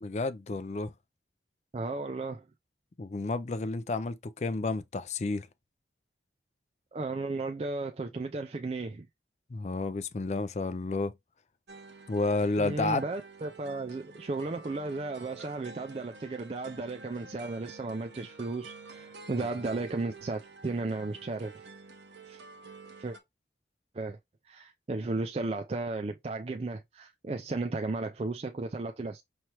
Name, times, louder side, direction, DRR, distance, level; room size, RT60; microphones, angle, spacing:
voice 1, 0.0-0.9 3.0-5.5 9.5-11.1 12.1-13.0, left 3 dB, 40° left, 0.4 m, -31 dB
voice 2, 1.7-2.5 6.9-9.1 12.6-21.7 22.2-22.4 23.0-23.2 23.9-24.2 24.4-29.2, right 3 dB, 35° right, 0.4 m, -34 dB
sound 1, 11.7-23.2, right 3 dB, 85° right, 1.0 m, -49 dB
5.7 x 3.1 x 2.9 m
head